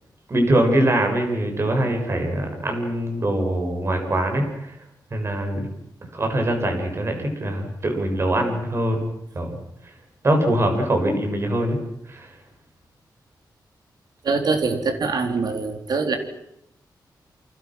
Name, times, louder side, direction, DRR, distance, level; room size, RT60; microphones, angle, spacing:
voice 1, 0.3-4.7 5.1-5.7 6.1-9.1 9.4-9.5 10.2-11.8 12.1-12.3, right 1 dB, 35° right, 4 dB, 6.7 m, -23 dB
voice 2, 14.2-16.2, right 4 dB, 65° right, 6 dB, 4.0 m, -23 dB
29.5 x 24.5 x 6.2 m, 0.78 s
wide cardioid pair, 125°, 8 cm